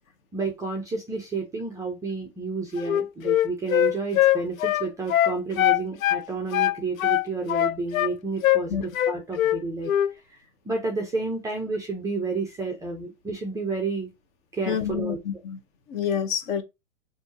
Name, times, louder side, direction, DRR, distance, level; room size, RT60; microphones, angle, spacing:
voice 1, 0.3-10.4 10.6-14.1 14.5-15.4, right 3 dB, 10° right, 0.6 m, -31 dB
Wind instrument woodwind instrument, 2.8-6.2 6.5-8.1 8.4-8.7 8.9-9.6 9.9-10.1, left 13 dB, 85° left, 0.5 m, -22 dB
voice 2, 14.7-15.6 15.9-16.6, left 8 dB, 30° left, 0.9 m, -28 dB
6.1 x 2.7 x 2.7 m
hypercardioid pair, 135°, 40 cm